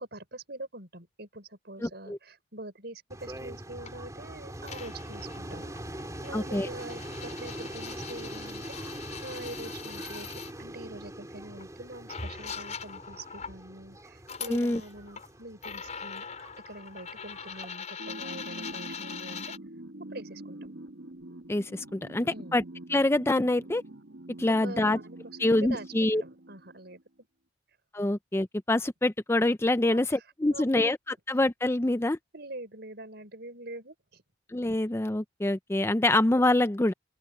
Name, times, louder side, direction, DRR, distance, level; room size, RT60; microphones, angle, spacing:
voice 1, 0.0-8.6 9.2-10.3 10.6-16.3 16.7-19.4 20.1-20.7 22.3-22.7 24.5-27.0 29.8-30.2 30.5-31.0 32.3-34.2, right 2 dB, 60° right, 6.4 m, -44 dB
voice 2, 1.8-2.2 6.3-6.7 14.5-14.8 21.5-22.6 22.9-23.8 24.4-25.0 25.4-26.2 27.9-31.0 31.3-32.2 34.5-36.9, left 1 dB, 15° left, 0.5 m, -25 dB
sound 1, 3.1-17.7, right 1 dB, 15° right, 3.4 m, -43 dB
sound 2, 3.9-4.0 4.6-10.5 11.6-11.7 12.1-13.6 14.2-15.3 15.6-19.6, left 6 dB, 40° left, 4.9 m, -42 dB
sound 3, 18.0-27.0, right 1 dB, 75° right, 1.4 m, -45 dB
open air
head